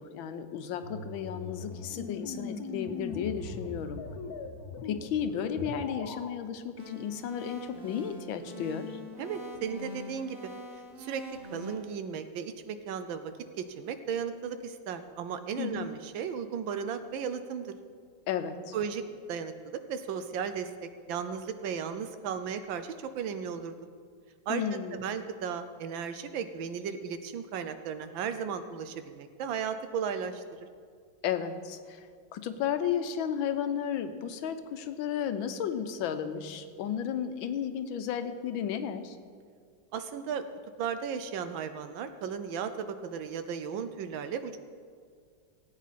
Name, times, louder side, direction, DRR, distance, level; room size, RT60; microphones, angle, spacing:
voice 1, 0.0-4.0 4.8-9.0 15.6-15.9 18.3-18.7 24.5-25.0 31.2-32.0 32.3-39.2, left 8 dB, 90° left, 10 dB, 1.5 m, -33 dB
sound 1, 0.8-6.4, left 4 dB, 60° left, 1.2 m, -40 dB
sound 2, 6.8-11.8, left 1 dB, 35° right, 1.9 m, -44 dB
voice 2, 9.2-10.5 11.0-11.2 11.5-17.7 18.7-19.0 19.3-23.7 24.5-30.7 39.9-40.4 40.8-44.6, right 7 dB, 80° right, 10 dB, 1.5 m, -35 dB
18.0 x 8.4 x 4.1 m, 2.1 s
omnidirectional pair, 2.1 m